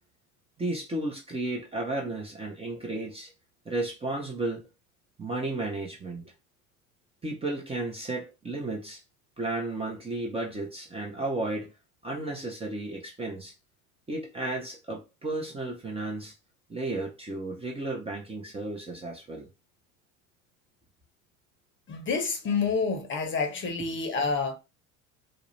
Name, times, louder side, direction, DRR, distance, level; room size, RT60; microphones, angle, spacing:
voice 1, 0.6-3.3 3.7-4.7 5.2-6.2 7.2-9.0 9.4-11.7 12.0-13.5 14.1-16.3 16.7-19.5, right 2 dB, 15° right, 0.6 m, -33 dB
voice 2, 21.9-24.5, left 4 dB, 30° left, 0.8 m, -28 dB
2.4 x 2.0 x 3.1 m
hypercardioid pair, 85°, 41 cm